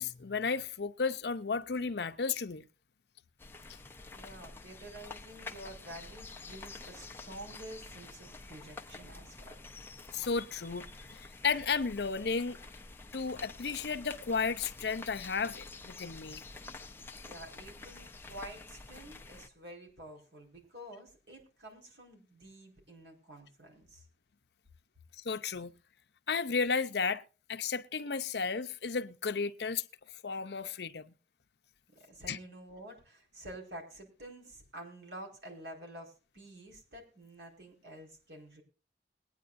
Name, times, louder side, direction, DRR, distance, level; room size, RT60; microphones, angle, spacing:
voice 1, 0.0-2.7 10.1-12.6 13.1-16.4 25.2-25.7 26.3-27.2 27.5-29.8 30.2-31.1 32.3-32.4, left 5 dB, 75° left, 0.7 m, -33 dB
sound 1, 3.4-19.5, left 3 dB, 15° left, 0.6 m, -48 dB
voice 2, 4.1-9.6 17.2-24.0 32.1-38.6, right 1 dB, 85° right, 4.7 m, -49 dB
21.5 x 9.5 x 2.6 m
head